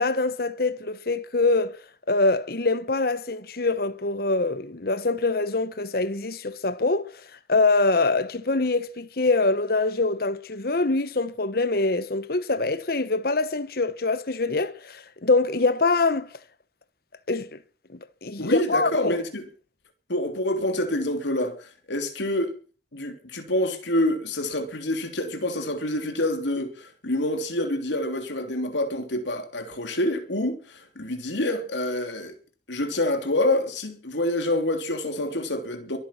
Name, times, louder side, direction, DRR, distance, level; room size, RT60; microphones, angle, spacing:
voice 1, 0.0-1.8 2.1-7.1 7.5-16.3 17.3-17.5 17.9-19.2, left 3 dB, 55° left, 1.0 m, -24 dB
voice 2, 18.4-19.5 20.1-22.5 22.9-32.4 32.7-36.0, left 1 dB, 80° left, 3.1 m, -27 dB
23.5 x 9.3 x 5.9 m
head